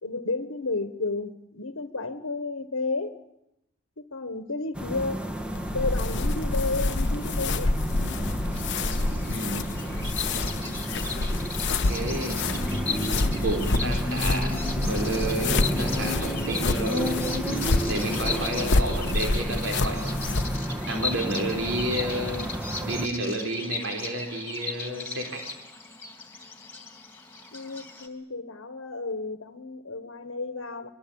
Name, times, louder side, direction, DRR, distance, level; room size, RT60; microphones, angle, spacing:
voice 1, 0.0-3.2 4.1-5.3 5.7-7.8 18.6-18.9 27.5-30.9, left 3 dB, 80° left, 9 dB, 1.4 m, -32 dB
sound 1, 4.7-23.1, equal, 5° right, 1.8 m, -31 dB
sound 2, 5.5-20.6, left 2 dB, 60° left, 0.9 m, -28 dB
Bird vocalization bird call bird song, 8.5-28.1, left 3 dB, 10° left, 3.3 m, -37 dB
voice 2, 9.3-9.6 11.9-12.6 13.4-14.5 14.8-17.3 17.9-20.4 20.8-22.5 22.8-25.5, right 1 dB, 65° right, 2 dB, 4.1 m, -31 dB
26.0 x 23.0 x 8.8 m, 0.84 s
head